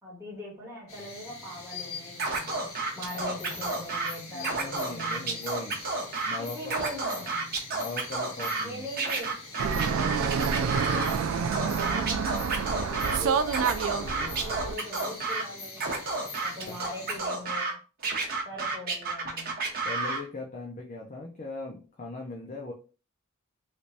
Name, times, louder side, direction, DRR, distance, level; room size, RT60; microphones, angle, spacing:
voice 1, 0.0-5.4 6.4-7.6 8.6-11.2 11.4-13.9 14.4-16.1 16.4-17.8 18.5-19.6, equal, 15° right, -6 dB, 1.9 m, -41 dB
sound 1, 0.9-17.2, left 3 dB, 70° left, 1.2 m, -44 dB
Scratching (performance technique), 2.2-4.1 4.4-6.4 6.6-8.6 9.0-11.1 11.5-13.2 13.5-15.4 15.8-17.7 18.0-20.2, right 3 dB, 40° right, 0.9 m, -31 dB
voice 2, 4.3-5.8 6.3-7.2 7.7-8.8 13.9-14.4 16.7-16.8 19.8-22.7, left 3 dB, 35° left, 0 dB, 0.5 m, -40 dB
Fixed-wing aircraft airplane, 9.6-14.7, right 6 dB, 65° right, 0.3 m, -28 dB
3.3 x 3.0 x 2.7 m, 0.35 s
head